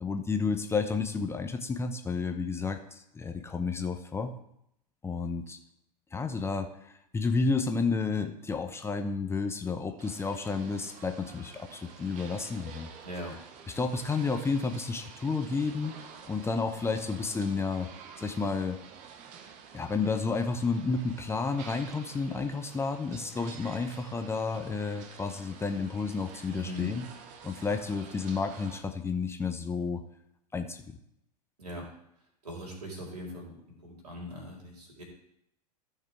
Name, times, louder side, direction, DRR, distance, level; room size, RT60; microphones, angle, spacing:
voice 1, 0.0-4.3 5.0-5.6 6.1-12.9 13.8-15.9 16.3-17.9 18.2-18.8 19.7-27.0 27.4-30.0 30.5-30.8, left 4 dB, 10° left, 7 dB, 0.9 m, -31 dB
sound 1, 10.0-28.8, right 6 dB, 40° right, 1.4 m, -49 dB
voice 2, 13.0-13.4 26.5-26.9 31.6-31.9 32.4-35.0, left 1 dB, 75° right, -2 dB, 4.2 m, -40 dB
14.5 x 6.6 x 3.6 m, 0.76 s
figure-of-eight pair, 95°, 20 cm